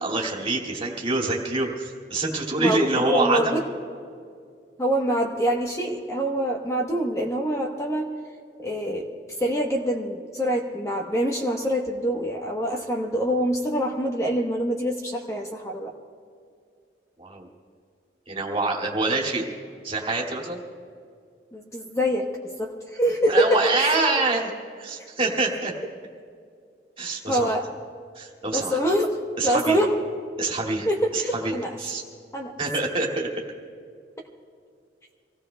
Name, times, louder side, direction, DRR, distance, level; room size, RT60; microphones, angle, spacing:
voice 1, 0.0-3.6 17.2-17.5 18.3-19.4 19.8-20.6 23.3-24.5 24.8-25.7 27.0-27.5 28.2-28.8 29.4-29.8 30.4-30.9 31.1-32.0 32.6-33.4, right 3 dB, 30° right, -1 dB, 2.2 m, -26 dB
voice 2, 2.5-3.6 4.8-8.1 8.6-9.1 9.4-15.9 21.5-24.0 27.3-27.7 28.5-29.1 29.4-29.9 30.6-31.7 32.3-32.5, equal, 15° left, 1 dB, 1.0 m, -25 dB
26.5 x 17.5 x 2.2 m, 2.3 s
head